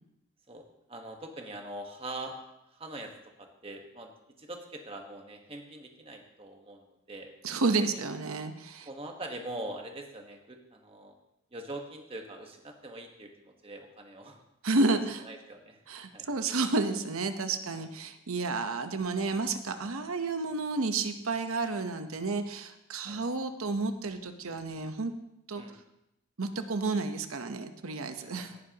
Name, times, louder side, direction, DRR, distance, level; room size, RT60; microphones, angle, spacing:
voice 1, 0.5-2.4 2.7-3.1 3.4-4.1 4.4-7.3 7.9-8.0 8.8-11.1 11.5-14.4 15.2-15.8 16.1-16.3 17.7-17.9 23.0-23.2 25.6-25.8 28.2-28.6, right 1 dB, 25° right, 3 dB, 1.3 m, -43 dB
voice 2, 7.4-8.9 14.6-15.3 15.9-25.1 25.5-25.6 26.4-28.5, right 3 dB, 80° right, 8 dB, 0.9 m, -31 dB
17.5 x 10.0 x 2.9 m, 0.85 s
head